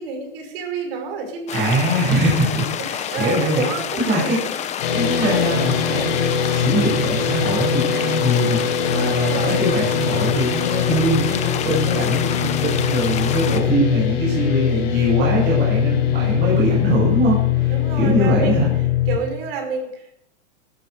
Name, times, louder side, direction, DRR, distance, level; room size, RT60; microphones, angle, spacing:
voice 1, 0.0-1.8 2.8-4.5 5.0-5.5 8.9-9.7 17.7-18.7 19.1-20.1, right 4 dB, 55° right, 4 dB, 6.0 m, -29 dB
sound 1, 1.5-13.6, left 9 dB, 20° left, 1.0 m, -28 dB
voice 2, 1.5-3.7 4.0-8.6 8.9-18.7, right 1 dB, 30° right, -4 dB, 7.7 m, -22 dB
sound 2, 4.8-19.2, left 10 dB, 60° left, 5.8 m, -21 dB
15.5 x 15.0 x 5.1 m, 0.76 s
hypercardioid pair, 145°, 36 cm